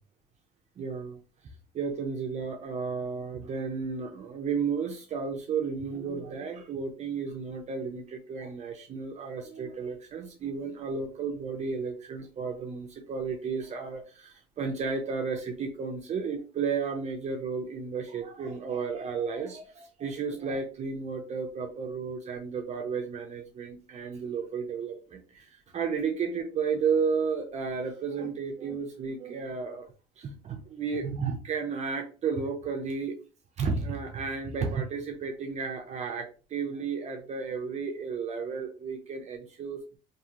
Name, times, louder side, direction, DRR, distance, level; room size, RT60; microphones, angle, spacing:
voice 1, 0.8-1.2 1.7-33.2 33.6-40.0, right 5 dB, 40° right, 3 dB, 0.5 m, -33 dB
2.8 x 2.6 x 2.4 m, 0.36 s
cardioid pair, 110°, 17 cm